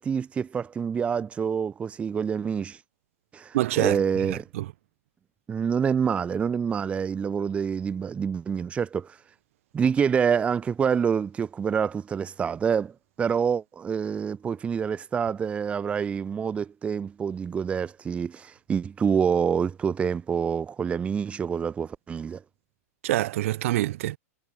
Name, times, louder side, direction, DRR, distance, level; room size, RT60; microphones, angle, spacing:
voice 1, 0.0-2.8 3.3-4.5 5.5-9.2 9.7-22.4, right 7 dB, 15° right, 0.8 m, -27 dB
voice 2, 3.5-4.0 4.3-4.7 23.0-24.2, right 16 dB, 60° right, 1.2 m, -26 dB
hypercardioid pair, 140°, 8 cm